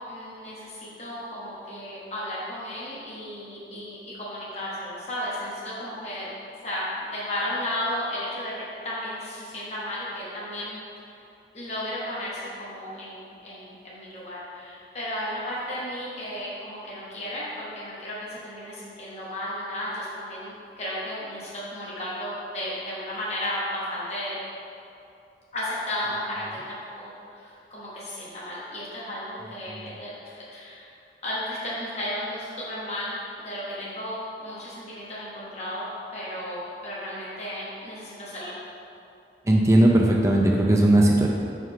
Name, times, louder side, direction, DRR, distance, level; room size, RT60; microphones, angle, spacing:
voice 1, 0.1-6.3 6.6-11.2 11.5-24.4 25.5-30.9 31.2-35.8 36.1-38.5, left 1 dB, 40° left, -8 dB, 1.1 m, -34 dB
voice 2, 39.5-41.3, right 1 dB, 15° right, -1 dB, 0.4 m, -18 dB
4.8 x 3.8 x 5.5 m, 2.6 s
head